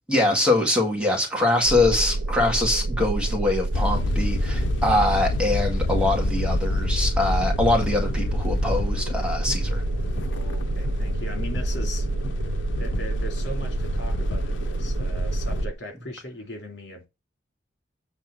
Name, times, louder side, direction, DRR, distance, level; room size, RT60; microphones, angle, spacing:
voice 1, 0.1-9.8, left 2 dB, 5° right, 1.9 m, -23 dB
sound 1, 1.7-15.7, right 2 dB, 80° right, 0.6 m, -28 dB
sound 2, 3.7-15.7, left 3 dB, 90° left, 0.6 m, -30 dB
voice 2, 10.2-12.1 12.7-17.1, left 1 dB, 70° left, 2.5 m, -38 dB
8.0 x 3.6 x 6.1 m
head